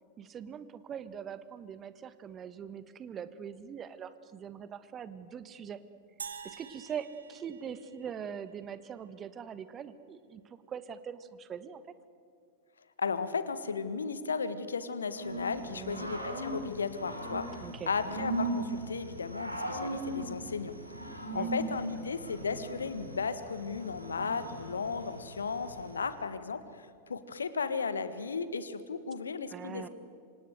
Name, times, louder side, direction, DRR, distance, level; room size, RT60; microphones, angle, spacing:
voice 1, 0.2-5.8 6.4-10.4 10.7-11.8 15.7-16.1 17.6-17.9 21.3-21.5 29.5-29.9, right 8 dB, 25° right, 13 dB, 1.4 m, -42 dB
sound 1, 6.2-8.6, right 6 dB, 70° right, 1.5 m, -47 dB
voice 2, 13.0-20.7 21.3-29.9, left 5 dB, 70° left, 13 dB, 1.6 m, -35 dB
Growling / Cricket, 15.1-26.1, right 2 dB, 90° right, 3.8 m, -39 dB
26.5 x 26.0 x 7.9 m, 2.4 s
figure-of-eight pair, 90°, 0 cm